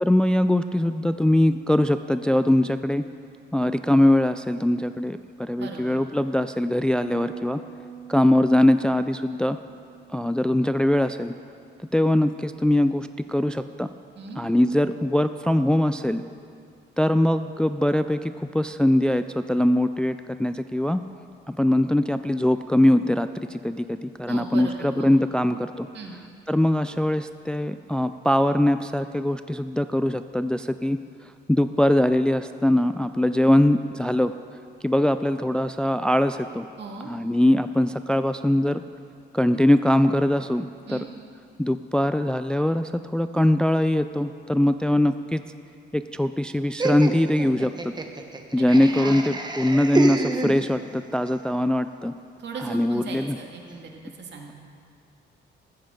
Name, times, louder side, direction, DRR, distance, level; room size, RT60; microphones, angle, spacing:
voice 1, 0.0-3.0 3.5-7.6 8.1-9.6 10.1-11.3 11.8-13.9 14.4-16.2 17.0-21.0 21.5-25.9 26.5-31.0 31.5-34.3 34.8-36.7 37.0-38.8 39.3-41.0 41.6-45.4 45.9-47.9 48.5-52.1 52.6-53.4, left 1 dB, 5° left, 10 dB, 0.3 m, -22 dB
voice 2, 5.6-6.0 14.2-14.4 24.3-25.1 25.9-26.2 36.8-37.1 40.9-41.1 48.6-48.7 48.9-49.4 52.4-54.5, right 4 dB, 60° right, 1 dB, 2.1 m, -37 dB
Bass guitar, 7.0-13.3, right 9 dB, 85° right, 1.1 m, -46 dB
Laughter, 46.8-51.0, right 3 dB, 20° right, 1.0 m, -29 dB
14.5 x 14.0 x 3.8 m, 2.4 s
cardioid pair, 90°, 20 cm